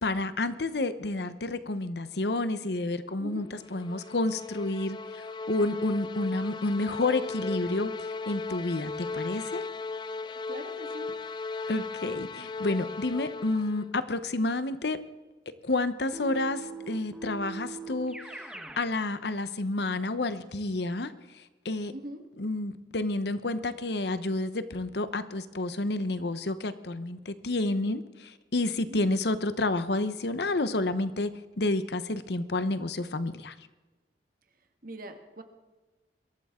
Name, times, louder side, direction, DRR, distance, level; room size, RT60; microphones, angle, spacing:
voice 1, 0.0-9.6 11.7-15.0 15.6-21.9 22.4-31.3 31.6-33.5, left 2 dB, 65° left, 12 dB, 0.9 m, -30 dB
sound 1, 3.4-14.0, left 4 dB, 25° left, 0.4 m, -37 dB
voice 2, 10.5-11.1 21.9-22.2 28.9-29.1 34.8-35.4, right 1 dB, 50° right, 6 dB, 1.7 m, -42 dB
Keyboard (musical), 16.1-18.9, right 4 dB, 5° right, 1.2 m, -41 dB
22.5 x 13.0 x 3.7 m, 1.2 s
head